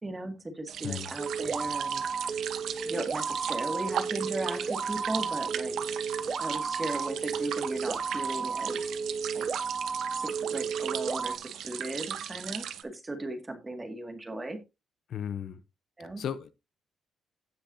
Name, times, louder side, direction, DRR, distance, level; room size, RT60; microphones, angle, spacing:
voice 1, 0.0-2.6 2.9-6.1 6.4-8.8 9.3-9.5 10.2-14.6 16.0-16.2, right 1 dB, 20° right, 2.1 m, -37 dB
sound 1, 0.7-12.8, right 9 dB, 75° right, 1.1 m, -37 dB
sound 2, 1.2-11.4, right 5 dB, 35° right, 0.7 m, -33 dB
voice 2, 15.1-15.6 16.2-16.5, left 9 dB, 65° left, 0.8 m, -35 dB
17.0 x 5.9 x 2.8 m
cardioid pair, 135°, 0 cm